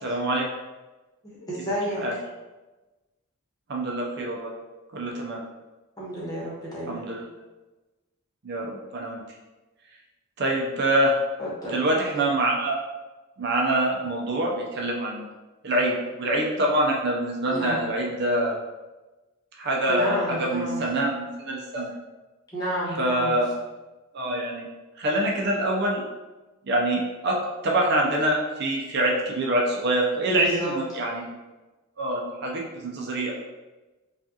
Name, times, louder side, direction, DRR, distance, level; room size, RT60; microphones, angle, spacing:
voice 1, 0.0-0.5 2.0-2.1 3.7-4.5 4.9-5.4 6.9-7.2 8.4-9.2 10.4-11.2 11.7-12.8 13.4-15.3 15.6-18.6 19.6-21.9 23.0-23.5 24.1-24.7 25.0-26.0 26.7-31.3 32.0-33.3, right 1 dB, 50° right, -1 dB, 0.5 m, -25 dB
voice 2, 1.2-2.2 6.0-7.0 11.4-11.8 17.5-17.9 19.9-20.9 22.5-23.4 24.3-24.4 30.3-31.0, right 1 dB, 20° left, -6 dB, 1.1 m, -31 dB
4.8 x 2.4 x 2.8 m, 1.2 s
head